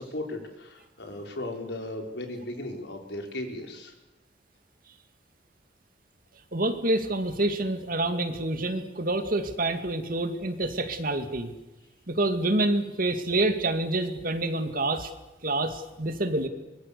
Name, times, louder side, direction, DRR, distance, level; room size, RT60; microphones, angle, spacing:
voice 1, 0.0-3.9, left 1 dB, 70° left, 3 dB, 4.9 m, -36 dB
voice 2, 6.5-11.5 12.1-15.1 15.4-16.5, right 2 dB, 50° right, 8 dB, 2.3 m, -27 dB
24.5 x 22.5 x 6.8 m, 1.1 s
head